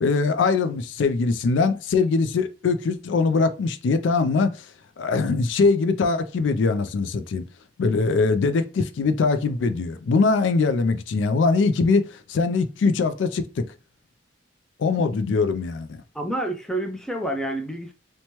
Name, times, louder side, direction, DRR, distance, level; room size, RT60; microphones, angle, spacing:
voice 1, 0.0-4.7 5.0-7.4 7.8-13.6 14.8-16.0, left 4 dB, 80° left, 0.3 m, -22 dB
voice 2, 16.1-17.9, right 1 dB, 5° left, 0.3 m, -28 dB
3.0 x 2.2 x 2.8 m
head